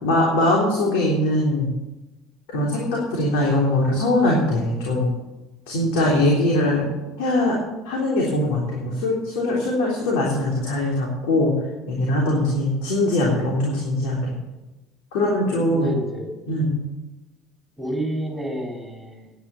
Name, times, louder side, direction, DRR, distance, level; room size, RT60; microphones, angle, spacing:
voice 1, 0.0-1.7 2.5-5.1 5.7-6.9 7.2-7.6 7.8-11.5 11.9-14.3 15.1-15.9 16.5-16.8, left 1 dB, 85° left, -3 dB, 3.5 m, -21 dB
voice 2, 15.7-16.3 17.8-19.3, right 1 dB, 5° right, 1 dB, 4.3 m, -29 dB
10.5 x 10.0 x 7.1 m, 1.0 s
supercardioid pair, 95°, 0 cm